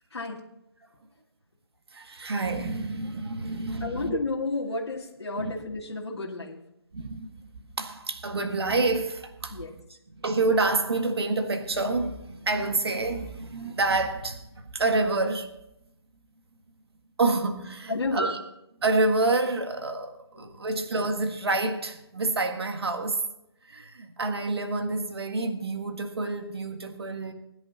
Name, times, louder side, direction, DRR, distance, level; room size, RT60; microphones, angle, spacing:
voice 1, 0.1-0.5 3.8-6.6 9.5-9.7 17.9-18.4 20.4-20.7, left 3 dB, 70° left, 2.3 m, -32 dB
voice 2, 1.9-4.2 5.4-5.5 6.9-7.3 7.8-9.6 10.2-14.4 14.7-15.5 17.2-18.4 18.8-23.2 23.6-27.3, right 3 dB, 65° right, 1.6 m, -28 dB
21.0 x 10.5 x 2.9 m
hypercardioid pair, 180°, 14 cm